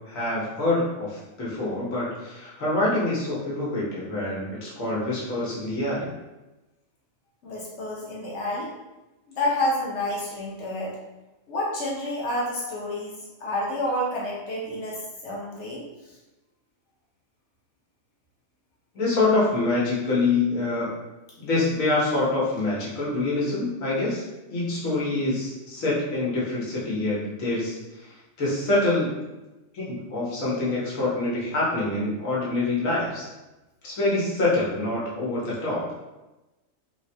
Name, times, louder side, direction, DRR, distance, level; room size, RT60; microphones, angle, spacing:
voice 1, 0.1-6.1 18.9-20.9 21.4-28.1 28.4-29.1 29.7-33.3 33.8-35.8, left 2 dB, 90° left, -6 dB, 1.4 m, -26 dB
voice 2, 7.4-8.7 9.4-10.9 11.5-15.8, left 1 dB, 65° left, -4 dB, 1.1 m, -29 dB
3.5 x 2.1 x 2.7 m, 1.1 s
omnidirectional pair, 1.3 m